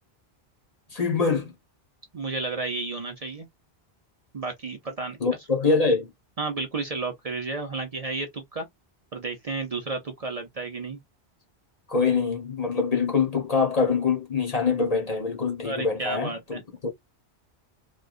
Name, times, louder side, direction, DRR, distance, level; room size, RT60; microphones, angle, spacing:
voice 1, 0.9-1.5 5.2-6.1 11.9-16.9, left 5 dB, 40° left, 0.9 m, -24 dB
voice 2, 2.1-3.5 4.3-5.2 6.4-8.7 9.1-11.0 15.6-16.6, right 3 dB, 40° right, 0.7 m, -32 dB
3.0 x 2.3 x 2.4 m
omnidirectional pair, 1.1 m